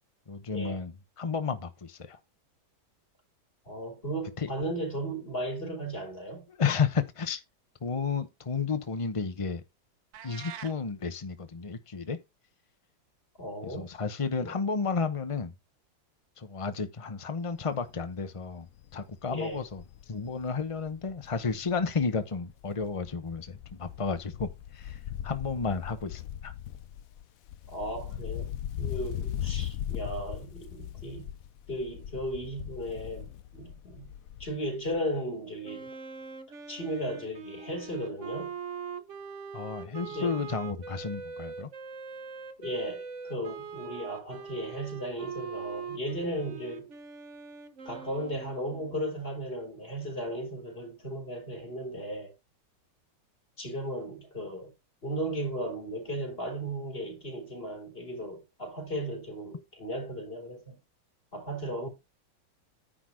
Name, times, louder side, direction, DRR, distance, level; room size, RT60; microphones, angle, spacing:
voice 1, 0.3-2.2 4.4-4.5 6.5-7.4 7.8-9.6 10.2-12.2 13.6-15.5 16.4-18.7 18.9-19.8 20.1-26.5 39.5-41.7, left 5 dB, 55° left, 0.3 m, -32 dB
voice 2, 3.6-6.4 13.4-13.9 14.4-14.5 19.3-19.6 27.7-31.3 31.7-34.1 34.4-35.9 36.7-38.6 40.0-40.5 42.6-46.9 47.8-52.3 53.6-54.7 55.0-60.8 61.3-61.9, right 1 dB, 25° left, 4.1 m, -36 dB
sound 1, 10.1-10.8, right 9 dB, 70° right, 1.7 m, -43 dB
Wind, 17.6-17.9 18.3-18.4 18.7-22.2 22.5-34.7 34.9-35.0, left 11 dB, 85° left, 0.7 m, -39 dB
Wind instrument woodwind instrument, 35.6-49.0, right 5 dB, 45° right, 1.3 m, -42 dB
10.0 x 3.9 x 6.2 m
omnidirectional pair, 2.2 m